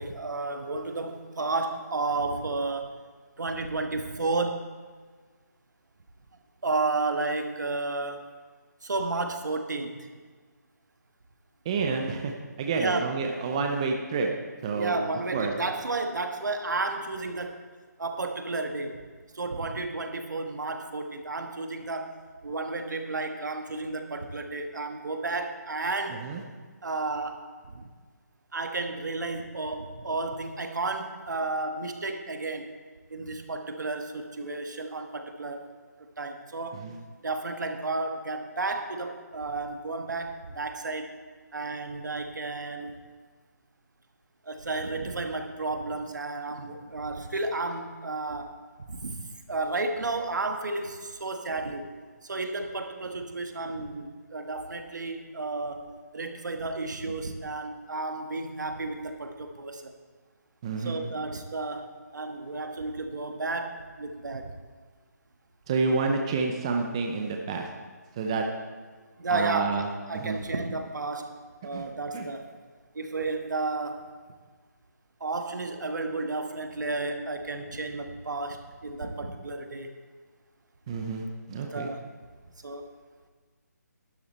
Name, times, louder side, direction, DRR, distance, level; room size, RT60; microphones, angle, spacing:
voice 1, 0.0-3.0 3.4-4.7 6.6-8.2 8.8-10.1 12.7-13.2 14.7-17.6 18.0-19.0 19.3-26.2 26.8-27.8 28.5-32.7 33.1-35.7 36.2-36.9 37.2-41.2 41.5-43.0 44.4-48.5 48.9-49.2 49.5-51.8 52.2-55.9 56.1-59.9 60.8-64.5 69.2-72.5 72.9-74.1 75.2-80.0 81.7-82.1 82.6-82.9, right 3 dB, 75° right, 5 dB, 1.4 m, -32 dB
voice 2, 11.6-12.3 12.6-14.3 14.6-15.0 15.3-15.5 26.2-26.4 36.7-36.9 60.6-61.0 65.7-67.7 68.2-68.4 69.3-69.9 70.1-70.4 71.7-71.9 72.1-72.3 80.9-81.9, right 4 dB, 20° right, 2 dB, 0.6 m, -29 dB
12.0 x 10.5 x 4.2 m, 1.5 s
hypercardioid pair, 170°, 10 cm